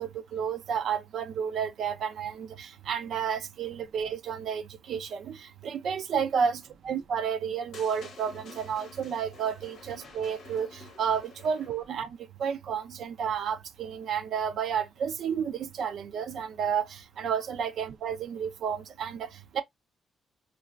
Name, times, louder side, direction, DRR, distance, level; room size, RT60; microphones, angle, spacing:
voice 1, 0.0-19.6, right 7 dB, 75° right, 0.3 m, -31 dB
sound 1, 7.7-12.0, left 4 dB, 80° left, 0.8 m, -50 dB
2.9 x 2.3 x 2.2 m
cardioid pair, 70°, 0 cm